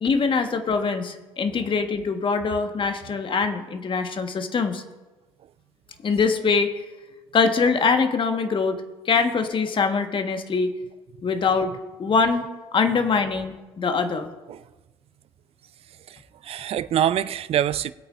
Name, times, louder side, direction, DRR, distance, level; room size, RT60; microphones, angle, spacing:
voice 1, 0.0-4.8 6.0-6.7 7.3-8.8 9.0-10.7 11.2-11.7 12.0-12.5 12.7-14.3, left 5 dB, 35° left, 1.5 m, -23 dB
voice 2, 16.1-17.9, right 10 dB, 45° right, 0.5 m, -25 dB
20.5 x 8.7 x 2.6 m
hypercardioid pair, 55°, 14 cm